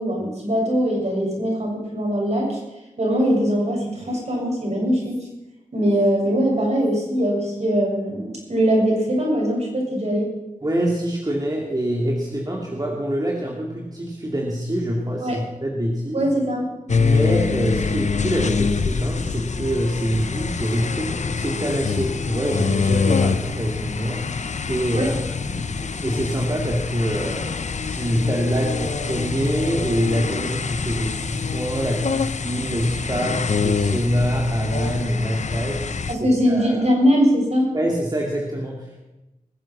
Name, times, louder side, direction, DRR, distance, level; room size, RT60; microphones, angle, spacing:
voice 1, 0.0-2.6 3.0-5.3 5.7-10.3 15.2-15.4 16.1-16.7 24.9-25.1 36.1-37.7, equal, 55° right, -2 dB, 6.5 m, -21 dB
voice 2, 10.6-16.2 16.9-27.5 27.8-36.1 36.5-36.8 37.7-39.0, equal, 30° right, -2 dB, 2.6 m, -25 dB
sound 1, 16.9-36.1, left 5 dB, 60° left, 0.7 m, -25 dB
21.0 x 7.7 x 6.2 m, 0.99 s
cardioid pair, 45°, 14 cm